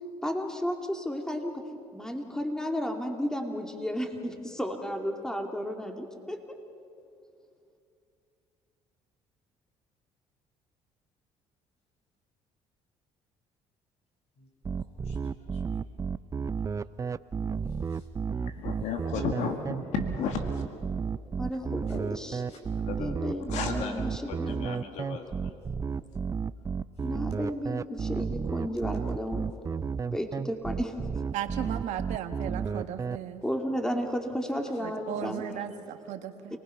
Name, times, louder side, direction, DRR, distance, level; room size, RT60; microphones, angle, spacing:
voice 1, 0.2-1.6 1.9-6.4 21.4-22.0 23.0-24.7 27.0-29.5 30.1-30.9 33.4-35.4 36.5-36.6, equal, 5° left, 4 dB, 2.6 m, -33 dB
sound 1, 14.6-33.2, right 5 dB, 25° right, 0.5 m, -32 dB
voice 2, 14.8-15.8 17.6-18.1 21.8-22.0 22.4-22.6 27.0-27.1 34.7-35.4, left 1 dB, 60° left, 3 dB, 5.8 m, -55 dB
voice 3, 18.3-20.6 22.9-23.2 23.5-25.6, left 6 dB, 75° left, 5 dB, 2.1 m, -34 dB
voice 4, 31.3-33.4 34.8-36.5, right 10 dB, 75° right, 7 dB, 1.5 m, -36 dB
29.0 x 19.5 x 5.8 m, 2.5 s
supercardioid pair, 80°, 12 cm